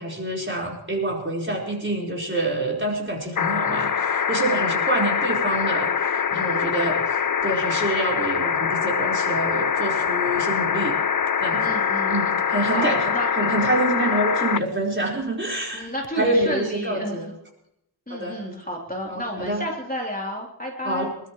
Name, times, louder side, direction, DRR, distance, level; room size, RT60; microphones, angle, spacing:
voice 1, 0.0-10.9 11.4-11.8 12.1-15.9 16.2-17.3 18.1-18.4 19.1-19.7 20.8-21.1, right 1 dB, 25° right, -1 dB, 4.6 m, -27 dB
sound 1, 3.3-14.6 16.0-16.1, left 7 dB, 45° left, 0.6 m, -24 dB
voice 2, 4.5-4.8 6.3-6.9 11.6-12.2 12.7-13.3 15.7-17.2 18.1-21.1, equal, 20° left, -2 dB, 3.4 m, -31 dB
25.0 x 13.0 x 3.2 m, 0.80 s
wide cardioid pair, 65°, 47 cm